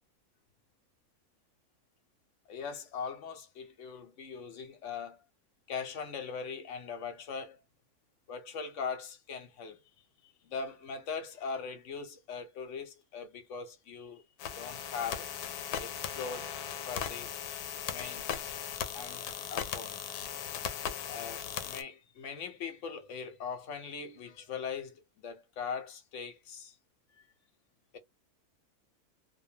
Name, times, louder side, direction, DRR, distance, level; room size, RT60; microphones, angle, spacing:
voice 1, 2.5-5.2 5.7-7.6 8.3-9.8 10.2-14.2 14.5-15.3 15.8-17.3 17.9-18.3 18.9-20.0 21.1-26.8 27.9-28.0, left 6 dB, 60° left, 0.9 m, -41 dB
sound 1, 14.4-21.8, left 8 dB, 85° left, 1.1 m, -38 dB
2.6 x 2.2 x 2.7 m
omnidirectional pair, 1.6 m